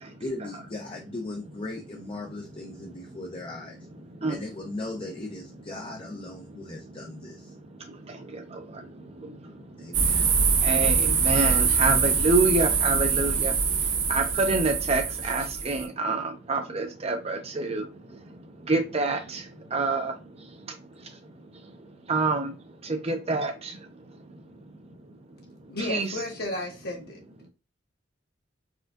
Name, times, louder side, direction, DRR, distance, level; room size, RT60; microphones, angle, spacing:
voice 1, 0.2-3.8 4.3-7.5 9.8-10.3, left 2 dB, 30° left, 0.6 m, -38 dB
voice 2, 7.8-20.5 21.0-21.2 22.1-22.6 22.8-23.9 25.9-26.1, right 3 dB, 30° right, 0.6 m, -28 dB
sound 1, 9.9-15.9, right 5 dB, 85° right, 1.0 m, -24 dB
voice 3, 25.7-27.2, left 1 dB, 55° left, 1.2 m, -33 dB
4.4 x 2.4 x 2.3 m
head